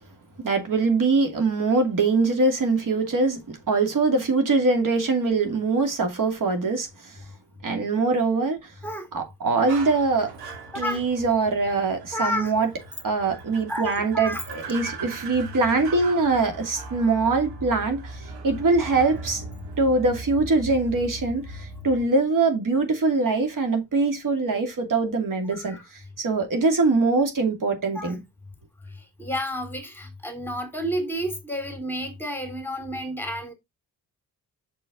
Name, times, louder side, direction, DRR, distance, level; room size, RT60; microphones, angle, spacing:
voice 1, 0.4-6.9 7.6-8.6 9.1-10.3 10.7-12.7 13.0-19.4 19.8-25.8 26.2-28.2, right 3 dB, 55° right, 2.5 m, -23 dB
sound 1, 9.7-22.1, right 2 dB, 90° right, 2.2 m, -39 dB
voice 2, 10.7-11.0 12.1-12.5 13.7-14.4 25.5-25.9 27.9-28.2 28.8-33.5, equal, 5° left, 2.7 m, -31 dB
6.2 x 5.6 x 3.8 m
cardioid pair, 75°, 37 cm